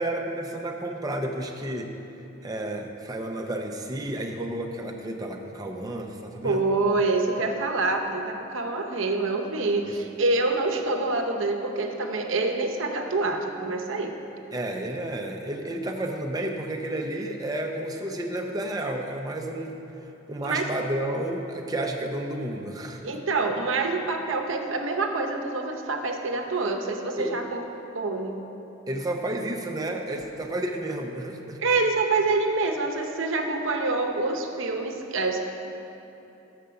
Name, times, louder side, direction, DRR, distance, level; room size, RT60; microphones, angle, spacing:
voice 1, 0.0-1.9 2.4-6.6 9.8-9.9 14.5-23.2 27.2-27.4 28.9-31.6, right 1 dB, 20° right, 2 dB, 0.6 m, -31 dB
voice 2, 6.4-14.1 20.4-20.7 23.0-27.6 27.9-28.4 31.6-35.4, right 3 dB, 75° right, 4 dB, 0.7 m, -26 dB
6.6 x 5.0 x 6.8 m, 3.0 s
head